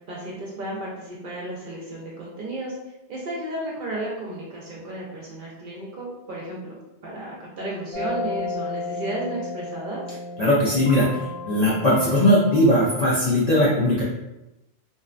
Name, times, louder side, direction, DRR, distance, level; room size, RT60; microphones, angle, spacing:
voice 1, 0.1-2.8 3.1-6.7 7.0-10.0, right 1 dB, 60° right, -4 dB, 0.6 m, -33 dB
sound 1, 7.9-13.1, left 3 dB, 75° left, 0.9 m, -33 dB
voice 2, 10.4-11.1 11.4-14.0, left 1 dB, 55° left, -7 dB, 0.5 m, -19 dB
2.6 x 2.1 x 2.4 m, 0.95 s
omnidirectional pair, 1.2 m